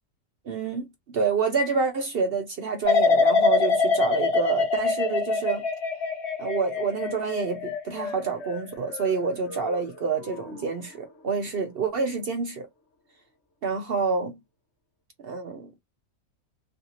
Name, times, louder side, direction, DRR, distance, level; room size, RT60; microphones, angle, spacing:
voice 1, 0.4-0.9 1.1-5.6 6.4-12.7 13.6-14.4 15.2-15.7, right 5 dB, 60° right, 0.6 m, -28 dB
sound 1, 2.9-9.8 10.2-10.6, left 4 dB, 50° left, 1.2 m, -25 dB
3.2 x 2.7 x 2.8 m
omnidirectional pair, 1.6 m